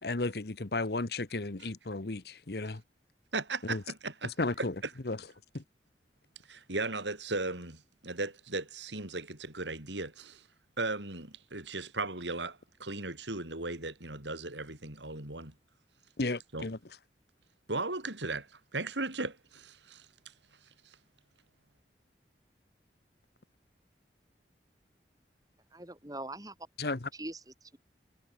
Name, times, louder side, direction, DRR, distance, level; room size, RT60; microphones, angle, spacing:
voice 1, 0.0-2.8 3.6-3.8 4.2-4.7 5.0-5.2 5.5-5.6 16.2-16.8 26.8-27.1, left 2 dB, 65° left, 1.1 m, -34 dB
voice 2, 3.3-4.7 6.5-10.4 10.8-15.5 16.5-16.7 17.7-18.5 18.7-20.1, right 3 dB, 90° right, 6.2 m, -37 dB
voice 3, 25.7-26.5 27.1-27.8, right 1 dB, 20° right, 7.8 m, -42 dB
head